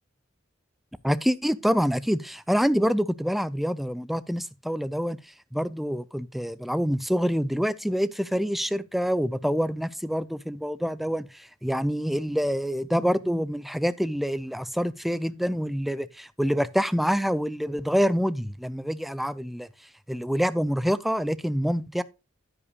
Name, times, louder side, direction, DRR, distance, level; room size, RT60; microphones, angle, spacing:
voice 1, 1.0-5.2 5.5-11.3 11.6-19.7 20.1-22.0, equal, ahead, 0.4 m, -26 dB
10.0 x 9.8 x 2.4 m
head